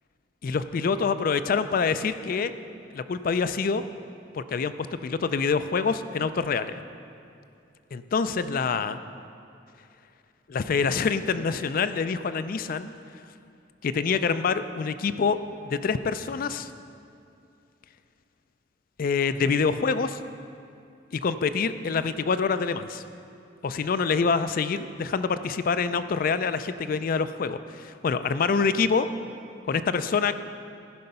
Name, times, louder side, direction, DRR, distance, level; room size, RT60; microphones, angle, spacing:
voice 1, 0.4-2.5 2.9-3.8 4.3-4.7 5.0-6.8 7.9-9.0 10.5-12.9 13.8-15.4 15.6-16.7 19.0-20.2 21.1-23.0 23.6-29.1 29.7-30.4, left 5 dB, 50° left, 12 dB, 0.4 m, -26 dB
14.5 x 5.6 x 5.4 m, 2.5 s
head